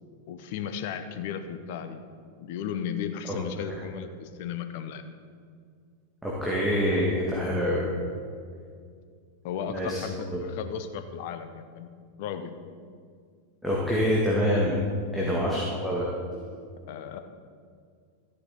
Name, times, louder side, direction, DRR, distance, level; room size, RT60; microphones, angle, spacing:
voice 1, 0.3-2.0 2.4-5.0 9.4-11.9 12.2-12.5 15.2-15.4 16.9-17.2, left 8 dB, 50° left, 9 dB, 0.9 m, -35 dB
voice 2, 6.2-7.9 9.7-10.0 10.3-10.4 13.6-14.8 15.1-16.1 16.3-16.4, equal, ahead, -5 dB, 1.9 m, -26 dB
14.0 x 9.6 x 4.3 m, 2.2 s
figure-of-eight pair, 90°, 0 cm